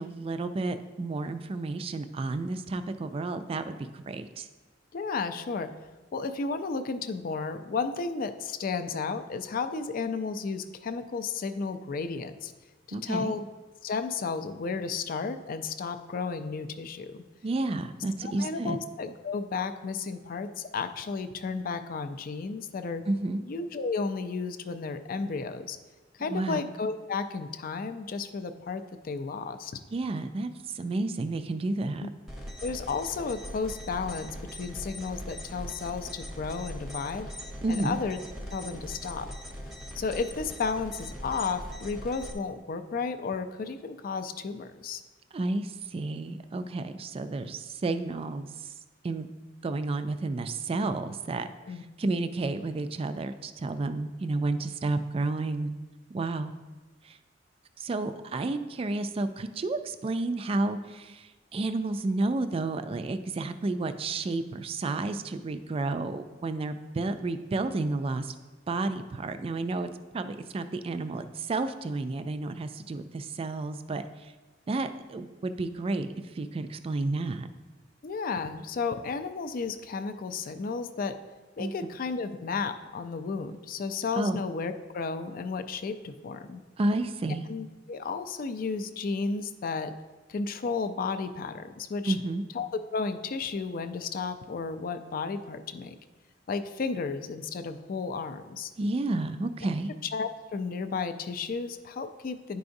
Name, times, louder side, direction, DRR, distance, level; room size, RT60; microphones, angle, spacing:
voice 1, 0.0-4.5 12.9-13.4 17.4-18.8 23.1-23.4 26.3-26.6 29.9-32.1 37.6-38.0 45.3-48.7 49.0-49.3 49.6-55.7 56.1-56.5 57.0-57.2 57.8-68.4 68.7-69.9 70.1-74.3 74.7-76.1 76.3-77.5 81.6-81.7 84.2-84.4 86.8-87.5 92.1-92.4 98.8-99.9, right 2 dB, 30° right, 10 dB, 0.3 m, -31 dB
voice 2, 4.9-5.7 6.1-12.5 12.9-13.5 13.8-17.2 18.2-23.0 23.4-25.8 26.1-29.7 32.0-32.1 32.6-37.3 37.7-38.2 38.5-39.3 39.9-45.0 51.7-52.2 78.0-81.2 81.6-86.6 87.5-89.9 90.3-92.2 92.5-96.0 96.5-98.7 100.1-102.6, left 4 dB, 50° left, 9 dB, 0.4 m, -33 dB
sound 1, 32.3-42.3, equal, ahead, 0.7 m, -41 dB
10.0 x 4.7 x 2.6 m, 1.3 s
head